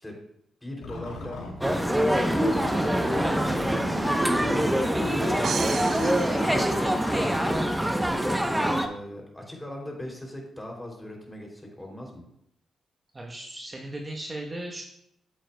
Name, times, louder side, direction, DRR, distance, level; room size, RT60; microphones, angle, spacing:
voice 1, 0.6-5.6 6.3-7.1 8.6-12.2, left 1 dB, 15° left, 0 dB, 3.1 m, -40 dB
sound 1, 0.8-7.5, left 3 dB, 85° left, 1.3 m, -39 dB
sound 2, 1.6-8.9, right 1 dB, 10° right, 0.8 m, -24 dB
sound 3, 5.4-7.4, right 7 dB, 60° right, 0.3 m, -34 dB
voice 2, 7.8-8.2 13.1-14.8, right 1 dB, 30° right, 0 dB, 1.1 m, -37 dB
8.9 x 7.5 x 2.3 m, 0.75 s
supercardioid pair, 50°, 0 cm